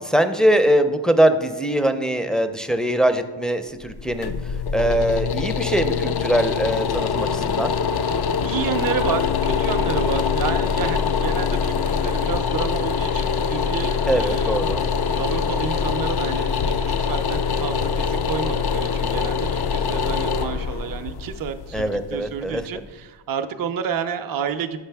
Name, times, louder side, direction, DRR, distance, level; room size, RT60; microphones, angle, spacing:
voice 1, 0.0-4.3 4.7-7.7 14.1-14.8 21.7-22.6, right 1 dB, ahead, 7 dB, 0.5 m, -21 dB
sound 1, 3.8-22.8, left 6 dB, 50° left, 0.5 m, -24 dB
voice 2, 7.0-7.4 7.9-24.8, right 7 dB, 45° right, 9 dB, 0.6 m, -30 dB
7.4 x 5.3 x 3.4 m, 1.3 s
cardioid pair, 40°, 50 cm